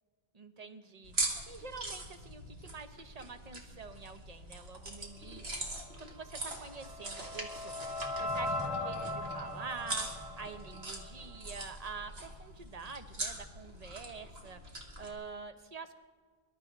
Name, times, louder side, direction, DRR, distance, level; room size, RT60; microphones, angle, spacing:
voice 1, 0.3-1.1 1.5-16.0, right 4 dB, 40° right, 8 dB, 1.0 m, -47 dB
sound 1, 1.0-15.1, right 2 dB, 75° right, 2.3 m, -42 dB
sound 2, 6.4-11.5, left 1 dB, 15° right, 4.0 m, -39 dB
24.5 x 12.0 x 4.1 m, 1.5 s
omnidirectional pair, 1.0 m